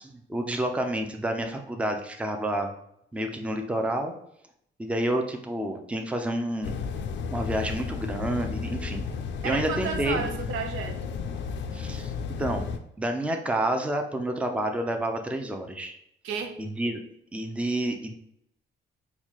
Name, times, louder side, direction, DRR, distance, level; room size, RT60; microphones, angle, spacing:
voice 1, 0.0-2.7 3.1-4.1 4.8-6.8 7.3-9.0 9.4-10.2 11.7-12.1 12.4-12.6 13.0-15.9 16.6-17.0 17.3-18.1, right 1 dB, 5° right, 4 dB, 0.4 m, -29 dB
sound 1, 6.6-12.8, left 5 dB, 65° left, 0.4 m, -33 dB
voice 2, 9.4-11.1 16.2-16.6, right 5 dB, 85° right, 5 dB, 0.6 m, -32 dB
4.1 x 2.3 x 3.0 m, 0.74 s
cardioid pair, 90°, 20 cm